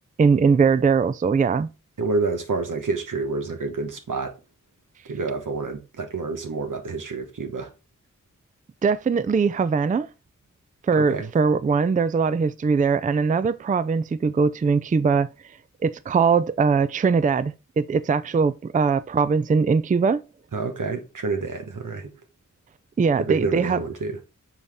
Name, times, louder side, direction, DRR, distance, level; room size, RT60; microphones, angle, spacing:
voice 1, 0.2-1.7 8.8-10.1 10.9-15.3 15.8-20.2 23.0-23.8, right 5 dB, 25° right, 0.3 m, -21 dB
voice 2, 2.0-4.3 5.0-7.7 11.0-11.3 20.5-22.1 23.1-24.2, right 3 dB, 85° right, 1.2 m, -28 dB
7.1 x 4.0 x 3.4 m
wide cardioid pair, 55°, 31 cm